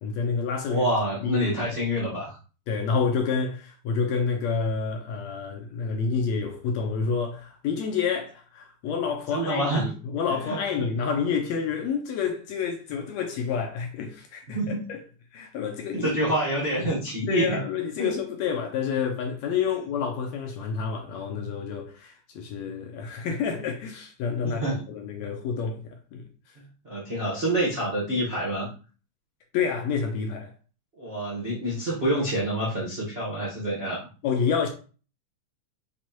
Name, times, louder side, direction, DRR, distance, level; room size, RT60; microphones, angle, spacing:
voice 1, 0.0-0.9 1.2-1.4 2.7-15.0 15.3-16.1 17.3-26.5 29.5-30.5 34.2-34.7, left 6 dB, 75° left, 1.7 m, -29 dB
voice 2, 0.7-2.4 9.3-9.9 10.4-10.9 14.5-14.8 15.9-17.6 18.0-18.1 24.4-24.8 26.6-28.7 31.0-34.1, right 1 dB, 60° right, 0.6 m, -27 dB
6.1 x 2.9 x 2.9 m
omnidirectional pair, 3.5 m